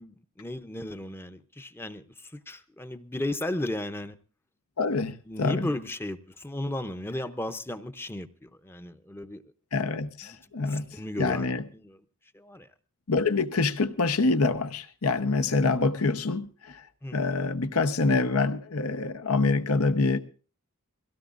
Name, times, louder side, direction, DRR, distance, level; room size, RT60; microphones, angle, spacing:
voice 1, 0.0-4.1 5.3-9.4 10.2-11.5 11.8-12.0 12.3-12.7 17.0-17.3, left 1 dB, 10° left, 0.6 m, -35 dB
voice 2, 4.8-5.7 9.7-10.9 11.2-11.6 13.1-16.8 17.1-20.2, left 3 dB, 85° left, 1.0 m, -26 dB
23.0 x 17.0 x 2.5 m
head